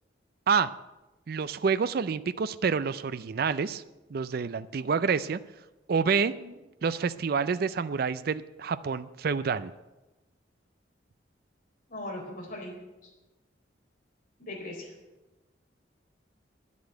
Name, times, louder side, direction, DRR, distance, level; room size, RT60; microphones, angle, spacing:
voice 1, 1.3-3.8 4.1-5.4 5.9-6.3 6.8-9.7, right 5 dB, 55° right, 14 dB, 0.4 m, -28 dB
voice 2, 11.9-12.7 14.4-14.9, left 1 dB, 50° left, -1 dB, 4.2 m, -39 dB
10.0 x 8.4 x 9.2 m, 1.1 s
head